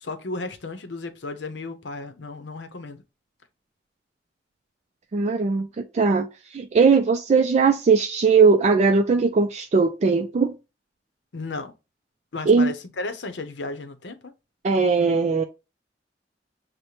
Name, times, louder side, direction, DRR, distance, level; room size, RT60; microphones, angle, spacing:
voice 1, 0.0-3.0 11.3-11.7 12.3-14.3, left 3 dB, 85° left, 0.7 m, -34 dB
voice 2, 5.1-10.5 12.5-12.7 14.6-15.4, right 4 dB, 40° right, 0.3 m, -19 dB
6.4 x 2.1 x 2.8 m
head